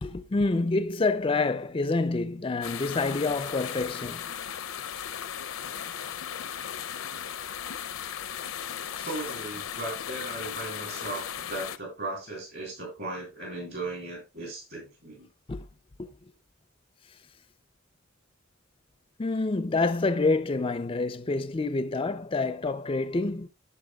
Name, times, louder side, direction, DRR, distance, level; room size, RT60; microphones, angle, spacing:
voice 1, 0.0-4.2 6.0-6.1 8.9-9.1 15.5-15.6 16.0-16.1 19.2-23.5, left 3 dB, 25° left, 0.4 m, -27 dB
sound 1, 2.6-11.8, left 9 dB, 75° left, 0.6 m, -36 dB
voice 2, 9.0-15.3, right 2 dB, 55° right, 6.3 m, -37 dB
16.0 x 5.5 x 2.3 m
head